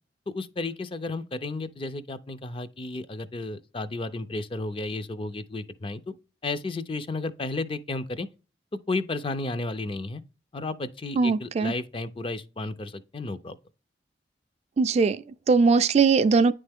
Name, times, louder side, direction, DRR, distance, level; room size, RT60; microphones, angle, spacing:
voice 1, 0.3-6.2 6.4-8.3 8.9-10.2 10.5-13.6, left 2 dB, 30° left, 0.5 m, -33 dB
voice 2, 11.2-11.7 14.8-16.5, right 4 dB, 40° right, 0.3 m, -21 dB
9.5 x 3.3 x 3.5 m
head